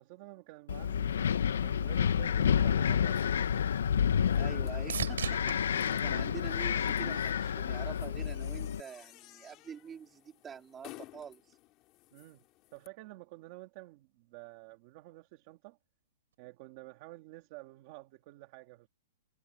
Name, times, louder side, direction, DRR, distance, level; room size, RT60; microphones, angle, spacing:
voice 1, 0.0-3.7 12.1-12.4 12.7-15.8 16.4-18.9, right 20 dB, 25° right, 1.7 m, -50 dB
Wind, 0.7-8.8, left 8 dB, 70° left, 0.7 m, -30 dB
Door knock & open, 3.0-12.9, left 18 dB, 20° left, 2.9 m, -56 dB
sound 1, 3.8-7.4 7.9-8.5 16.3-16.4, right 8 dB, 80° right, 3.6 m, -42 dB
voice 2, 4.4-11.5, right 7 dB, 10° right, 3.6 m, -46 dB
hypercardioid pair, 180°, 0 cm